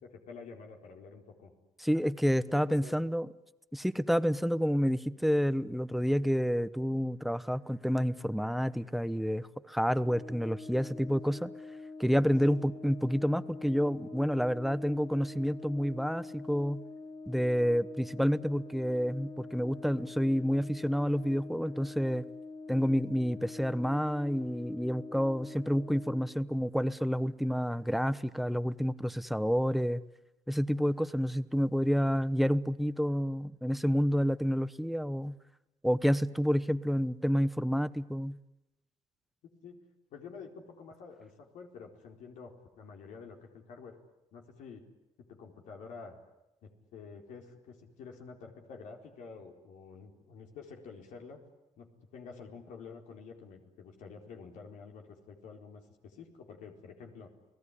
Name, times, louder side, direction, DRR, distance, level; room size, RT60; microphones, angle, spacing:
voice 1, 0.0-1.5 2.5-3.0 12.4-12.6 39.4-39.8 40.1-43.9 44.3-44.9 45.2-46.2 46.6-51.4 51.8-57.3, left 5 dB, 90° left, 2 dB, 4.2 m, -49 dB
voice 2, 1.8-3.3 3.7-11.5 12.0-16.8 17.3-22.2 22.7-30.0 30.5-35.3 35.8-38.4, equal, ahead, 14 dB, 0.9 m, -29 dB
Brass instrument, 10.0-26.3, left 3 dB, 45° left, 6.4 m, -45 dB
30.0 x 18.5 x 10.0 m, 0.93 s
cardioid pair, 95°, 13 cm